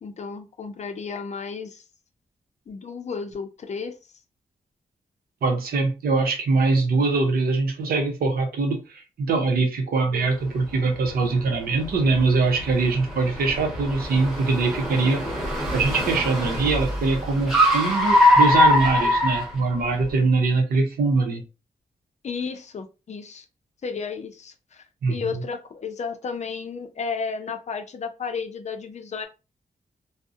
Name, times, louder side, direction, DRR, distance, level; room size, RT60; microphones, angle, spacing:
voice 1, 0.0-1.8 2.7-3.9 22.2-23.5 23.8-29.3, left 5 dB, 50° left, 0.4 m, -33 dB
voice 2, 5.4-15.2 15.7-21.4 25.0-25.4, right 3 dB, 85° right, 0.7 m, -23 dB
Car, 10.3-20.1, left 1 dB, ahead, 1.0 m, -23 dB
2.6 x 2.0 x 2.4 m
cardioid pair, 95°, 15 cm